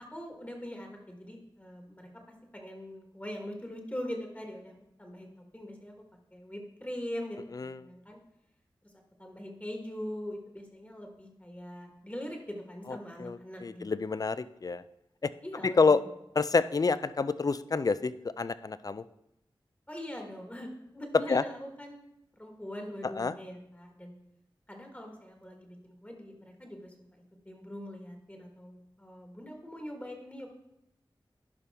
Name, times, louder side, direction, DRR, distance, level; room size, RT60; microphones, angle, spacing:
voice 1, 0.1-2.1 2.5-4.7 5.0-5.9 6.3-8.2 8.8-8.9 9.2-13.8 15.4-16.1 19.9-22.1 22.4-24.1 24.7-30.5, equal, 15° left, 2 dB, 1.4 m, -42 dB
voice 2, 13.2-14.8 15.6-16.0 16.4-18.1 18.4-19.0 21.3-21.4 23.2-23.3, left 4 dB, 40° left, 15 dB, 0.3 m, -27 dB
11.0 x 5.3 x 3.4 m, 0.83 s
wide cardioid pair, 65°, 9 cm